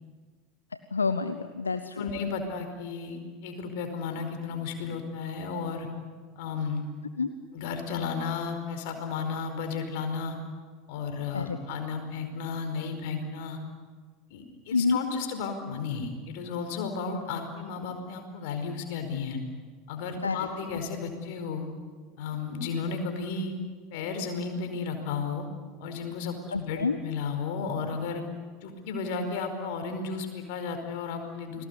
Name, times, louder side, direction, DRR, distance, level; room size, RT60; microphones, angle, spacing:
voice 1, 0.9-2.0 7.2-7.3 11.3-11.6 14.7-15.0 20.2-20.4 26.5-27.0, left 4 dB, 80° left, 11 dB, 0.9 m, -27 dB
voice 2, 2.0-5.9 6.4-6.8 7.5-10.4 10.9-13.6 14.3-19.4 19.9-21.7 22.2-23.5 23.9-25.5 25.8-28.2 28.6-31.6, left 5 dB, 60° left, 6 dB, 4.9 m, -33 dB
30.0 x 21.0 x 8.3 m, 1.5 s
figure-of-eight pair, 75°, 0 cm